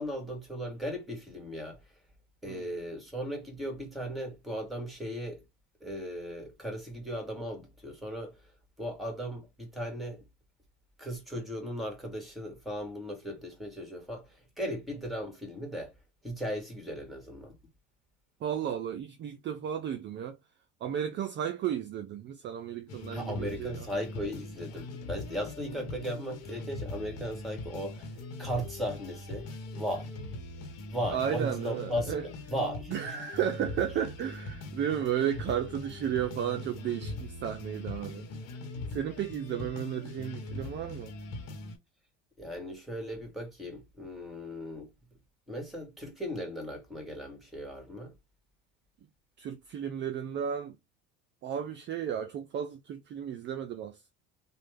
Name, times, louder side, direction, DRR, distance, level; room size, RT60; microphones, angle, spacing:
voice 1, 0.0-1.8 2.4-5.4 5.8-8.4 8.8-10.2 11.0-15.9 16.2-17.5 23.1-28.1 28.4-29.5 29.8-30.1 30.9-33.2 42.4-44.9 45.5-48.1, equal, ahead, 1.7 m, -37 dB
voice 2, 18.4-20.4 20.8-23.9 31.1-32.3 32.9-38.3 38.9-41.1 49.4-50.8 51.4-54.1, right 9 dB, 35° right, 0.5 m, -33 dB
sound 1, 22.9-41.8, left 2 dB, 55° left, 1.1 m, -41 dB
3.1 x 2.2 x 3.3 m
supercardioid pair, 110°, 32 cm